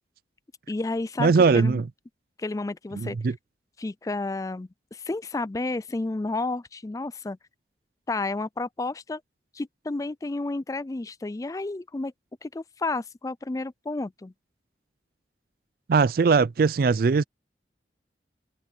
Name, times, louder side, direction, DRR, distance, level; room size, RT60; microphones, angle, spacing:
voice 1, 0.7-1.8 2.4-3.2 3.8-7.4 8.1-9.2 9.5-12.1 12.4-14.3, left 2 dB, 20° left, 0.4 m, -31 dB
voice 2, 1.2-1.9 2.9-3.3 15.9-17.2, right 4 dB, 55° right, 0.4 m, -20 dB
head